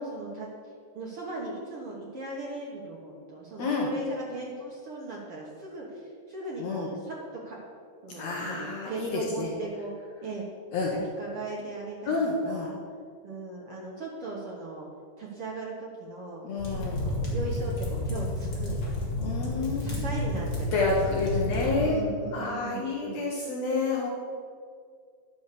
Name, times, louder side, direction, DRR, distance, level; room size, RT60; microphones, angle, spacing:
voice 1, 0.0-7.6 8.0-9.9 10.2-10.4 10.9-12.2 12.4-12.8 13.2-14.9 15.2-16.4 16.9-18.8 19.4-20.7 21.4-23.2, right 2 dB, 75° right, -4 dB, 1.2 m, -38 dB
voice 2, 3.6-3.9 6.6-6.9 8.2-9.5 10.7-10.9 12.0-12.7 16.4-17.1 19.2-20.0 20.7-22.0 22.3-24.1, left 3 dB, 75° left, -2 dB, 1.5 m, -29 dB
sound 1, 16.6-21.8, left 1 dB, 40° left, 2.5 m, -31 dB
11.5 x 6.2 x 6.8 m, 2.2 s
omnidirectional pair, 4.6 m